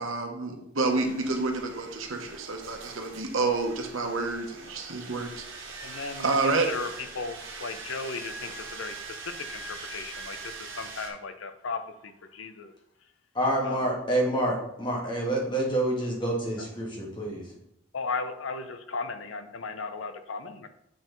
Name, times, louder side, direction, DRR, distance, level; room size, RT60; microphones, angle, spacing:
voice 1, 0.0-5.4 5.8-6.7, right 3 dB, 85° right, 3 dB, 1.2 m, -29 dB
sound 1, 0.9-11.1, right 3 dB, 65° right, 1.5 m, -42 dB
voice 2, 5.8-6.9 7.1-9.0 9.2-10.4 10.8-12.7 13.6-13.8 17.9-20.7, left 4 dB, 80° left, 9 dB, 0.6 m, -36 dB
voice 3, 13.3-17.5, right 1 dB, 25° left, -2 dB, 1.8 m, -27 dB
7.8 x 4.5 x 3.9 m, 0.76 s
head